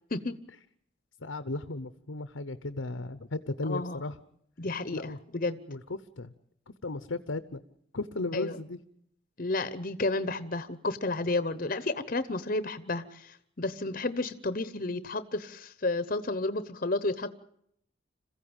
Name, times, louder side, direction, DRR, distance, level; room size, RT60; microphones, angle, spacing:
voice 1, 1.2-4.1 4.9-5.2 5.7-6.3 6.8-7.6 7.9-8.8, left 2 dB, 90° left, 12 dB, 1.0 m, -35 dB
voice 2, 3.6-4.0 4.6-5.6 8.3-8.6 9.4-17.3, left 2 dB, 45° left, 13 dB, 1.0 m, -32 dB
27.0 x 15.0 x 8.9 m, 0.73 s
head